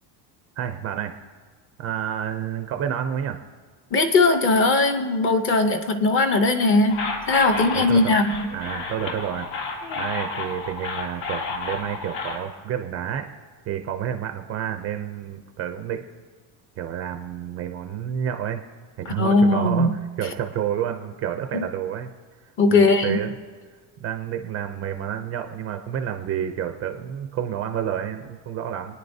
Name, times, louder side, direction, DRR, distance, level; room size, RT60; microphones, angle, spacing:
voice 1, 0.6-1.2 1.8-3.4 7.5-8.2 8.5-9.5 10.0-13.3 13.7-16.0 16.8-18.6 19.0-19.9 20.2-22.1 22.7-23.3 24.0-29.0, right 9 dB, 30° right, 6 dB, 0.4 m, -29 dB
voice 2, 3.9-8.5 19.1-19.9 21.5-21.7 22.6-23.2, left 2 dB, 25° left, 7 dB, 0.6 m, -19 dB
sound 1, 6.9-12.4, left 4 dB, 75° left, 2.3 m, -31 dB
26.5 x 9.7 x 2.6 m, 1.5 s
cardioid pair, 175°, 48 cm